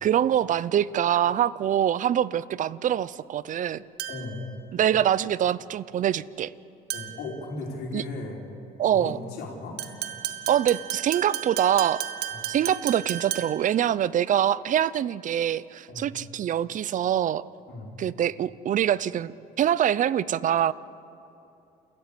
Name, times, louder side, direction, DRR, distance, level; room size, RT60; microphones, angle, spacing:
voice 1, 0.0-3.8 4.7-6.5 7.9-8.0 8.8-9.2 10.5-12.0 12.5-17.4 18.0-19.3 19.6-20.7, right 10 dB, 50° right, 19 dB, 0.6 m, -24 dB
sound 1, 4.0-4.4 6.9-7.3 9.8-13.7, right 11 dB, 75° right, 1.5 m, -34 dB
voice 2, 4.1-4.4 6.9-8.4 8.9-9.8 12.3-12.4 15.9-16.1 17.7-17.9, left 3 dB, 85° left, 0 dB, 4.4 m, -36 dB
28.5 x 14.0 x 8.4 m, 2.8 s
cardioid pair, 110°, 17 cm